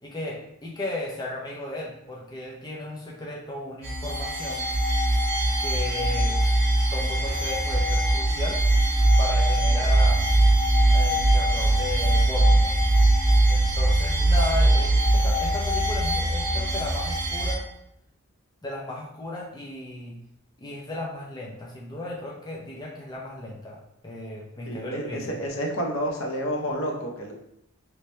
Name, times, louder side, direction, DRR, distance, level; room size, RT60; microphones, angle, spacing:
voice 1, 0.0-4.6 5.6-6.4 6.9-8.6 9.2-10.2 10.9-12.8 13.5-17.6 18.6-20.2 20.6-23.8 24.0-25.3, left 2 dB, 20° left, -3 dB, 0.5 m, -35 dB
sound 1, 3.8-17.5, right 1 dB, 45° right, 0.9 m, -21 dB
voice 2, 24.7-27.3, equal, 75° left, 1 dB, 0.7 m, -29 dB
3.2 x 2.9 x 3.2 m, 0.79 s
head